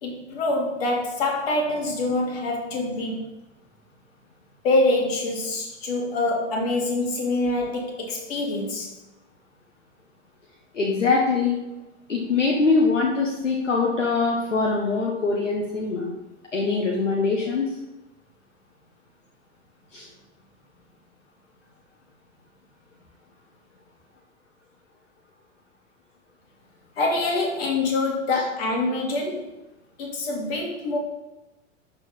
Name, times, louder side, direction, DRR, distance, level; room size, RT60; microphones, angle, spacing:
voice 1, 0.0-3.3 4.6-8.9 27.0-29.4 30.0-31.0, left 2 dB, 55° left, -1 dB, 2.7 m, -25 dB
voice 2, 10.7-11.6 12.1-16.1 16.5-17.7 19.9-20.1, left 4 dB, 75° left, -2 dB, 1.6 m, -23 dB
12.0 x 4.6 x 5.5 m, 1.0 s
figure-of-eight pair, 90°, 37 cm